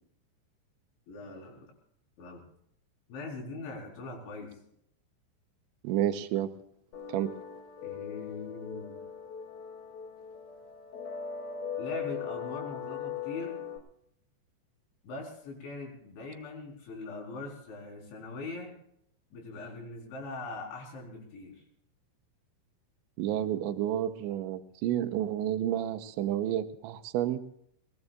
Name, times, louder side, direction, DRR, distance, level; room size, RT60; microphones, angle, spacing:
voice 1, 1.1-1.7 2.2-2.4 3.1-4.5 7.8-9.0 11.8-13.6 15.0-18.8 19.3-21.6, left 3 dB, 75° left, -1 dB, 6.9 m, -41 dB
voice 2, 5.8-6.5 7.1-7.3 23.2-27.4, right 11 dB, 90° right, 8 dB, 3.2 m, -30 dB
sound 1, 6.9-13.8, left 8 dB, 55° left, 3.9 m, -39 dB
22.0 x 21.0 x 2.5 m, 0.72 s
omnidirectional pair, 5.3 m